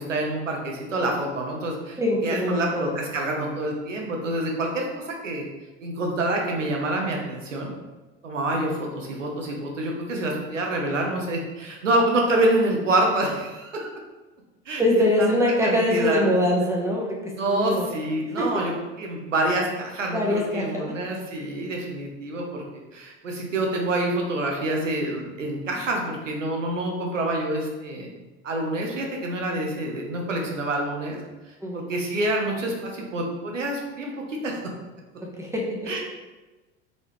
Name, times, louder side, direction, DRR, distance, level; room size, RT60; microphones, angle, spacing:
voice 1, 0.0-5.4 5.8-7.7 8.2-13.9 14.7-14.8 15.2-15.3 15.6-16.3 17.4-18.7 19.0-22.6 22.9-28.1 28.4-31.2 31.7-34.6 35.9-36.0, right 1 dB, 85° right, 0 dB, 0.9 m, -27 dB
voice 2, 2.0-2.9 14.8-17.9 18.4-18.5 20.1-20.8 31.6-31.9 35.2-35.9, left 1 dB, 10° right, -2 dB, 1.1 m, -23 dB
3.9 x 3.8 x 3.1 m, 1.2 s
hypercardioid pair, 80°, 37 cm